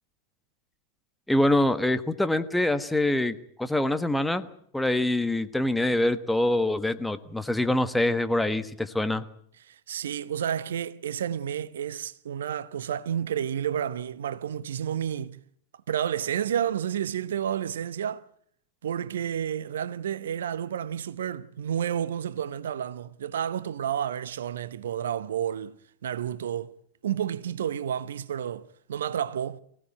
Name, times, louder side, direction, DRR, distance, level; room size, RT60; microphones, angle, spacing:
voice 1, 1.3-4.5 4.7-9.2, left 1 dB, 5° left, 1.4 m, -25 dB
voice 2, 9.6-15.4 15.9-18.3 18.8-25.8 26.0-26.7 27.0-29.6, right 9 dB, 65° right, 0.9 m, -30 dB
24.0 x 17.0 x 8.9 m
figure-of-eight pair, 90°, 0 cm